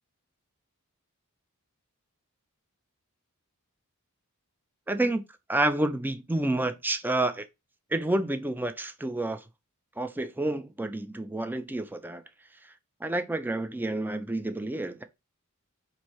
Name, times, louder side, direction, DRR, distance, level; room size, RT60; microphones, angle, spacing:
voice 1, 4.9-5.2 5.5-7.5 7.9-9.4 10.0-12.2 13.0-15.0, right 2 dB, 10° right, 0.4 m, -29 dB
4.2 x 2.7 x 4.6 m
head